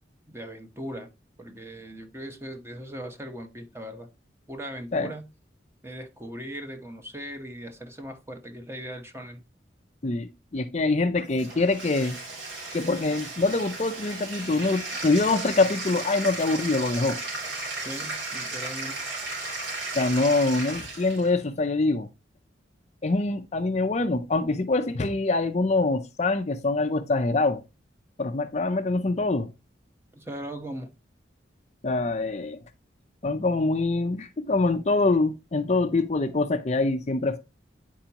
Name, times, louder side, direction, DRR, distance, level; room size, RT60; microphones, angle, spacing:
voice 1, 0.3-1.1 1.4-4.1 4.5-5.3 5.8-9.4 17.8-19.0 30.1-30.9, equal, 15° right, 1.0 m, -39 dB
voice 2, 10.0-12.2 12.7-17.2 19.9-22.1 23.0-27.6 28.2-29.5 31.8-32.6 33.2-37.4, left 3 dB, 35° left, 0.5 m, -24 dB
Bathtub (filling or washing), 11.3-21.3, right 3 dB, 85° right, 3.2 m, -35 dB
10.0 x 4.6 x 2.9 m
head